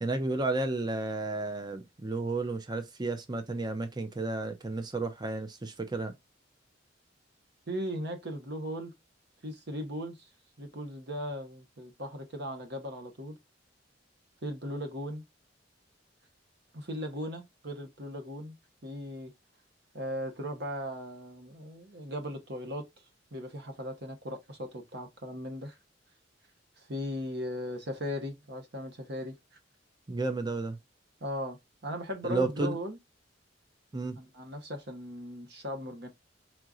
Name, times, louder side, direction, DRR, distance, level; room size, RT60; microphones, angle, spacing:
voice 1, 0.0-6.1 30.1-30.8 32.2-32.8 33.9-34.2, right 2 dB, 20° right, 0.6 m, -32 dB
voice 2, 7.7-8.9 9.4-10.3 10.6-13.4 14.4-15.2 16.7-18.6 18.8-19.3 19.9-22.9 23.3-25.8 26.8-29.4 31.2-33.0 34.1-36.1, equal, 60° right, 1.3 m, -38 dB
4.5 x 3.7 x 2.5 m
head